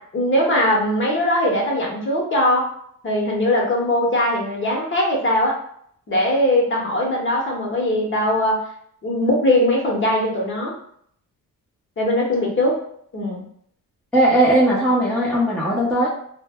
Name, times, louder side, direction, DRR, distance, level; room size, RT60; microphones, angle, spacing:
voice 1, 0.1-2.7 3.0-5.6 6.1-8.6 9.0-10.7 12.0-12.8 13.1-13.4, left 1 dB, 35° left, -2 dB, 0.9 m, -20 dB
voice 2, 14.1-16.1, right 1 dB, 5° left, -6 dB, 0.7 m, -18 dB
2.1 x 2.1 x 3.4 m, 0.65 s
cardioid pair, 75°, 35 cm